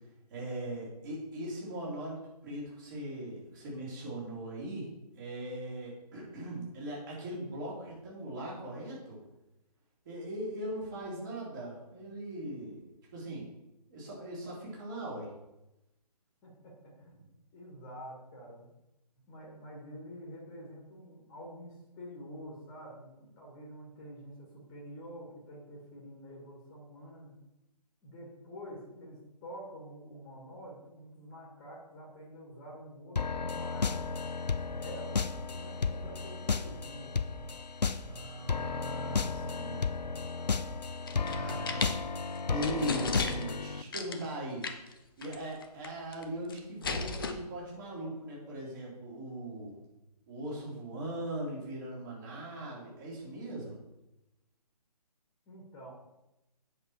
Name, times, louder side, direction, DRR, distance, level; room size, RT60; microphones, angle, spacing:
voice 1, 0.3-4.9 5.1-9.2 10.0-12.8 13.1-13.5 13.9-15.3 38.1-39.8 41.2-42.0 42.5-44.6 45.2-49.7 50.3-53.7, right 1 dB, 30° right, -5 dB, 3.2 m, -39 dB
voice 2, 16.4-17.3 17.5-18.7 19.3-27.4 28.0-34.1 34.8-37.4 55.5-55.9, equal, 15° left, -2 dB, 1.8 m, -48 dB
sound 1, 33.2-43.8, left 4 dB, 75° left, 0.5 m, -33 dB
sound 2, 40.8-41.9 42.4-42.5 42.6-43.6 43.9-44.3 44.6-44.9 45.2-45.3 45.6-46.2 46.5-47.3, left 4 dB, 35° left, 0.7 m, -35 dB
8.4 x 6.4 x 4.3 m, 0.94 s
figure-of-eight pair, 145°, 21 cm